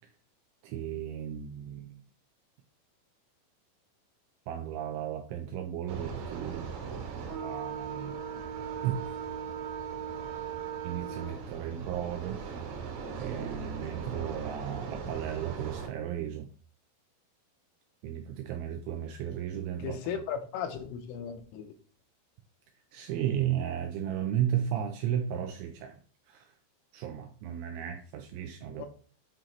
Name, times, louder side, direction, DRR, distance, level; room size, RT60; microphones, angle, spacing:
voice 1, 0.6-2.0 4.5-6.7 7.4-8.2 8.8-8.9 10.8-12.6 13.2-16.5 18.0-20.2 22.9-26.0 26.3-26.5 26.9-28.9, right 10 dB, 90° right, 2.6 m, -34 dB
sound 1, 5.9-15.9, right 6 dB, 70° right, 3.0 m, -38 dB
voice 2, 19.8-21.7 28.8-28.9, left 8 dB, 85° left, 3.3 m, -36 dB
9.0 x 3.8 x 3.0 m
omnidirectional pair, 5.9 m